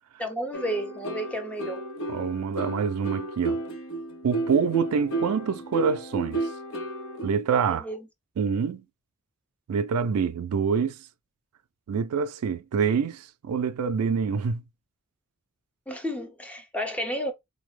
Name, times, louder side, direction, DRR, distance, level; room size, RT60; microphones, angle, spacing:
voice 1, 0.2-1.8 7.6-8.0 15.9-17.3, equal, 5° left, 0.6 m, -32 dB
sound 1, 0.5-7.3, right 2 dB, 65° left, 0.7 m, -32 dB
voice 2, 2.1-3.6 4.2-6.5 7.2-7.9 8.4-8.8 9.7-11.0 11.9-14.6, right 6 dB, 90° right, 0.4 m, -26 dB
3.9 x 2.0 x 3.2 m
head